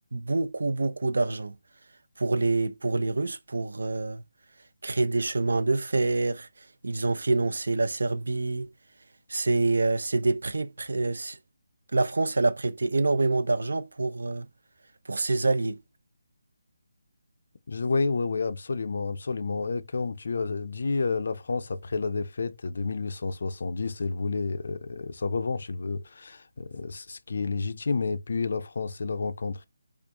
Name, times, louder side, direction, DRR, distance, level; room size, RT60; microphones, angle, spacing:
voice 1, 0.1-1.6 2.2-4.2 4.8-6.5 6.8-8.7 9.3-11.4 11.9-14.5 15.1-15.8, right 3 dB, 65° right, 0.5 m, -26 dB
voice 2, 17.7-29.6, left 4 dB, 45° left, 0.4 m, -30 dB
4.5 x 2.3 x 2.9 m
hypercardioid pair, 180°, 0 cm